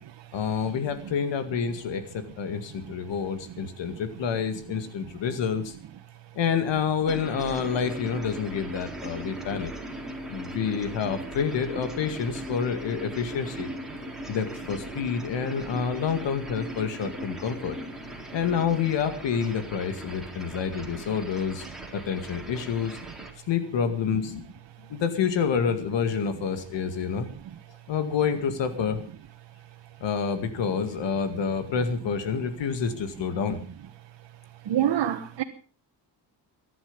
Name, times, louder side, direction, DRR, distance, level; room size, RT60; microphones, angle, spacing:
voice 1, 0.3-5.7 6.3-9.7 10.3-13.7 14.3-17.8 18.3-21.6 21.9-23.0 23.5-24.5 24.9-27.3 27.9-29.0 30.0-33.6, left 7 dB, 80° left, 2.2 m, -28 dB
sound 1, 7.1-23.3, right 1 dB, ahead, 4.0 m, -39 dB
voice 2, 34.7-35.4, right 10 dB, 65° right, 1.5 m, -25 dB
23.5 x 11.0 x 5.4 m
cardioid pair, 125°, 43 cm